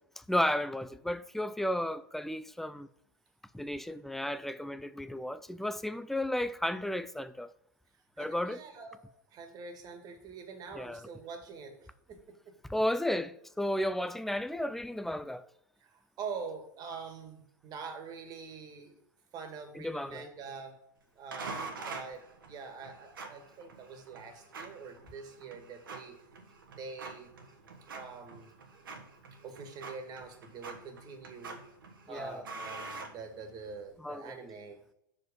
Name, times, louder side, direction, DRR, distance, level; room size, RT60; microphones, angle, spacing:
voice 1, 0.3-2.9 3.5-7.5 8.2-8.6 10.7-11.1 12.7-15.5 19.7-20.2 32.1-32.4 34.0-34.3, left 1 dB, 5° left, 0.4 m, -33 dB
voice 2, 8.2-9.0 9.3-12.2 12.5-12.6 15.8-19.0 19.3-20.8 21.2-26.2 26.8-27.3 27.9-28.5 29.4-31.6 32.1-34.8, right 5 dB, 35° right, 1.8 m, -45 dB
sound 1, 21.3-33.8, right 3 dB, 85° right, 1.3 m, -46 dB
6.0 x 5.1 x 5.3 m
hypercardioid pair, 110°, 11 cm